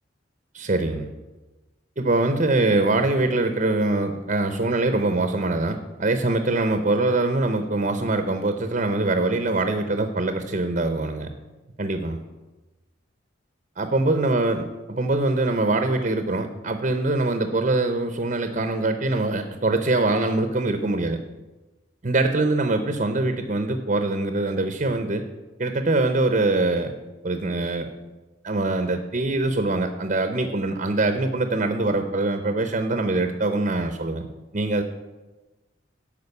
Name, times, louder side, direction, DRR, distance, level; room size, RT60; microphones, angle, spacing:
voice 1, 0.5-1.1 2.0-11.3 11.8-12.2 13.8-21.2 22.0-25.2 25.6-26.9 27.2-27.9 28.4-34.3 34.5-34.8, right 2 dB, 40° right, 7 dB, 0.7 m, -23 dB
12.0 x 5.1 x 8.2 m, 1.1 s
head